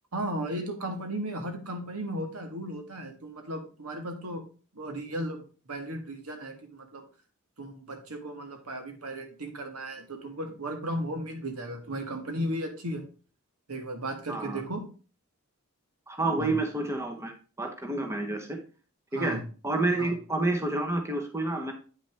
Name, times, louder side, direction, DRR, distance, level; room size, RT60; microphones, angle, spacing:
voice 1, 0.1-4.4 4.7-7.0 7.6-13.0 13.7-14.8 16.4-16.5 19.1-19.5 20.0-20.1, right 1 dB, 90° right, 5 dB, 1.6 m, -35 dB
voice 2, 14.3-14.6 16.1-17.3 17.6-18.6 19.1-19.4 19.6-21.7, right 2 dB, 15° right, 4 dB, 1.1 m, -29 dB
8.7 x 5.9 x 3.5 m, 0.36 s
head